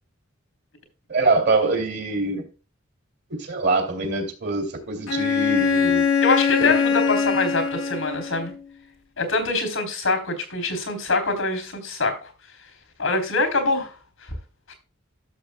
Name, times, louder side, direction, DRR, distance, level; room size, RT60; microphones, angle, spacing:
voice 1, 1.1-2.4 3.3-6.0 6.6-6.8, right 3 dB, 55° right, 3 dB, 2.6 m, -24 dB
Bowed string instrument, 5.1-8.6, left 6 dB, 70° left, 1.2 m, -22 dB
voice 2, 6.2-8.5 9.2-12.3 13.0-13.9 14.7-14.8, left 3 dB, 90° left, 7 dB, 3.3 m, -24 dB
13.0 x 7.0 x 2.2 m, 0.32 s
head